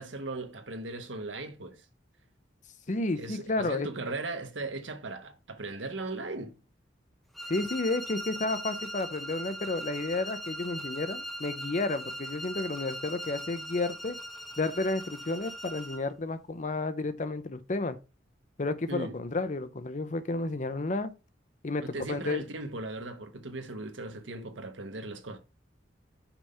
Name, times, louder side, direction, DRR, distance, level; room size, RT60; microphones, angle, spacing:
voice 1, 0.0-1.8 3.2-6.6 18.9-19.2 21.8-25.4, right 2 dB, 85° right, 1.3 m, -38 dB
voice 2, 2.9-3.9 7.5-14.2 14.6-18.0 18.6-21.1 21.6-22.4, left 2 dB, 40° left, 0.7 m, -31 dB
sound 1, 7.3-16.1, equal, ahead, 0.8 m, -40 dB
5.9 x 3.5 x 5.5 m
head